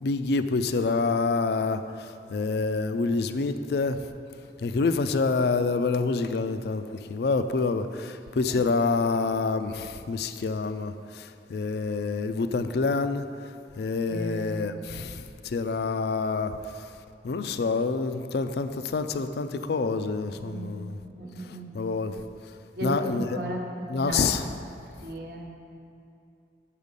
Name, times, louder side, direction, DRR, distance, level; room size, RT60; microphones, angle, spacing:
voice 1, 0.0-4.1 4.6-16.9 17.2-21.0 21.7-22.2 22.8-23.3 23.9-24.4, left 4 dB, 65° left, 10 dB, 0.4 m, -27 dB
voice 2, 14.1-14.7 20.2-20.8 21.0-21.8 22.7-24.3 25.0-25.5, right 1 dB, 60° right, 0 dB, 1.1 m, -35 dB
7.2 x 6.7 x 5.3 m, 2.5 s
head